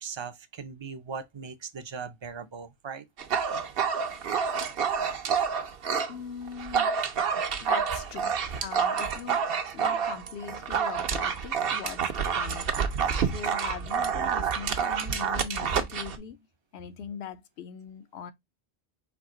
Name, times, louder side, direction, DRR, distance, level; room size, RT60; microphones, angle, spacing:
voice 1, 0.0-3.1, right 5 dB, 35° right, 0.5 m, -39 dB
Dog, 3.2-6.1 6.5-16.2, right 6 dB, 65° right, 0.9 m, -28 dB
voice 2, 6.1-7.0 7.6-8.4 8.6-16.5 16.7-18.3, left 7 dB, 75° left, 0.9 m, -41 dB
4.7 x 2.9 x 3.7 m
omnidirectional pair, 1.1 m